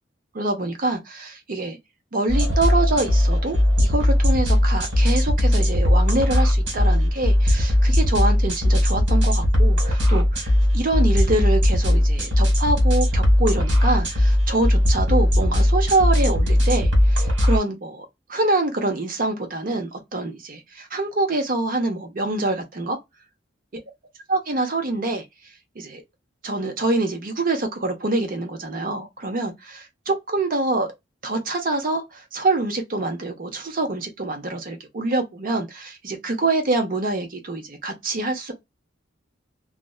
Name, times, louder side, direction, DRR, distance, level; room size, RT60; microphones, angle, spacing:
voice 1, 0.3-1.8 2.1-23.0 24.3-25.2 25.8-26.0 26.4-30.9 31.2-38.5, right 2 dB, 50° right, 0.7 m, -25 dB
sound 1, 2.3-17.6, left 1 dB, 75° right, 1.5 m, -19 dB
2.5 x 2.2 x 2.3 m
head